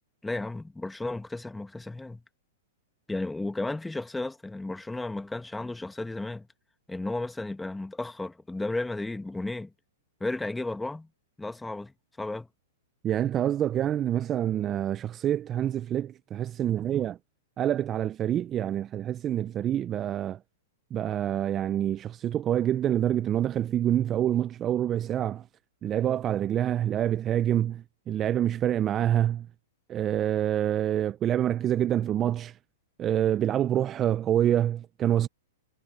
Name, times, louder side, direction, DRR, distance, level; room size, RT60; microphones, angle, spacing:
voice 1, 0.2-2.2 3.1-6.5 6.9-9.7 10.2-11.1 11.4-11.9 12.2-12.5, left 2 dB, 5° left, 1.7 m, -33 dB
voice 2, 13.0-17.2 17.6-20.4 20.9-25.4 25.8-29.5 29.9-32.5 33.0-35.3, right 11 dB, 25° right, 0.7 m, -26 dB
hypercardioid pair, 115°, 0 cm